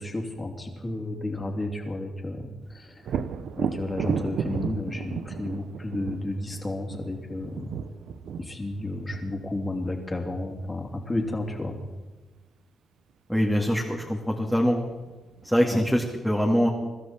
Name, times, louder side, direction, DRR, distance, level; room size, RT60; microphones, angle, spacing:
voice 1, 0.0-3.2 3.6-7.7 8.4-11.8 15.7-15.8, left 2 dB, 25° left, 2 dB, 3.0 m, -32 dB
Thunder, 3.0-10.7 14.3-14.4 14.9-15.8, right 7 dB, 75° right, 0.9 m, -34 dB
voice 2, 13.3-14.8 15.4-16.7, equal, ahead, -2 dB, 2.3 m, -23 dB
23.5 x 13.0 x 4.5 m, 1.2 s
cardioid pair, 80°, 0 cm